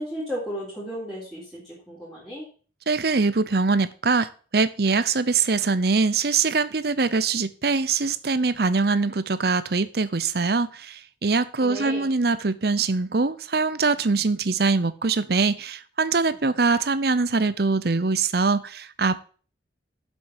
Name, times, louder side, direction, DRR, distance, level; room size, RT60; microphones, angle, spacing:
voice 1, 0.0-2.5 11.6-12.1, equal, ahead, 3.6 m, -34 dB
voice 2, 2.9-19.2, right 4 dB, 55° right, 0.7 m, -23 dB
7.7 x 7.5 x 7.4 m
head